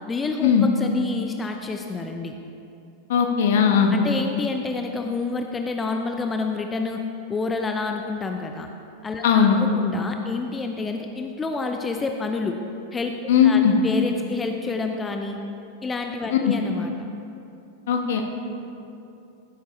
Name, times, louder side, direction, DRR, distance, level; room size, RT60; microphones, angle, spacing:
voice 1, 0.1-2.4 3.9-7.0 7.3-8.7 9.0-12.6 12.9-13.1 13.4-15.4 15.8-16.9, left 3 dB, 15° left, 4 dB, 0.5 m, -28 dB
voice 2, 3.1-3.9 9.2-9.6 13.3-13.7 16.3-16.5 17.9-18.2, left 8 dB, 55° left, 4 dB, 1.1 m, -18 dB
14.5 x 8.1 x 3.2 m, 2.7 s
figure-of-eight pair, 90°, 0 cm